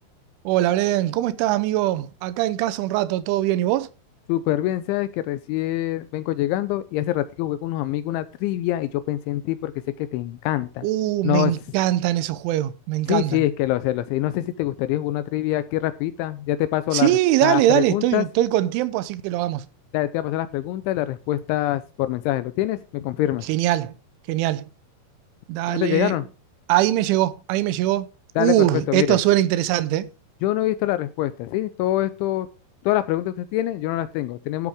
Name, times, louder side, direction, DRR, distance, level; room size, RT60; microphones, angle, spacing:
voice 1, 0.5-3.9 10.8-13.4 16.9-19.7 23.5-23.9 24.3-24.7 25.5-26.2 26.7-28.1 28.4-30.1, right 14 dB, 85° right, 3.2 m, -22 dB
voice 2, 4.3-9.7 10.0-10.9 11.2-11.5 13.1-17.1 17.4-18.3 19.9-23.5 25.7-26.3 28.4-29.2 30.4-32.5 32.9-34.7, left 14 dB, 85° left, 3.0 m, -25 dB
13.5 x 8.2 x 3.6 m
omnidirectional pair, 5.6 m